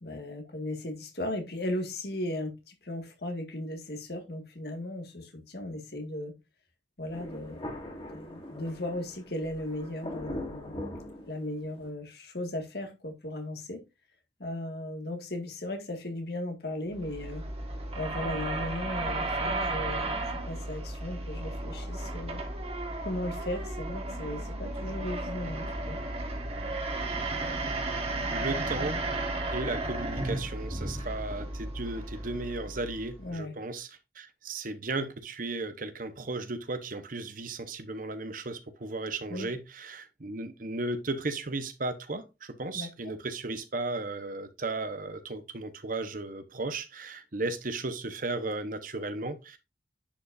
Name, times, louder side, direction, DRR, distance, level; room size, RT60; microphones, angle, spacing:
voice 1, 0.0-6.3 7.0-7.7 8.1-10.7 11.3-13.8 14.4-17.4 18.0-22.4 23.0-26.0 33.2-33.5 39.3-39.5 42.7-43.2, left 1 dB, 60° left, 1.9 m, -36 dB
Thunder, 7.1-11.9, left 1 dB, 30° left, 2.5 m, -41 dB
sound 1, 16.9-33.3, right 2 dB, 35° right, 1.5 m, -34 dB
voice 2, 27.5-27.8 28.3-29.0 29.5-33.9 34.1-49.6, right 2 dB, 50° right, 1.0 m, -35 dB
9.9 x 5.1 x 2.6 m
head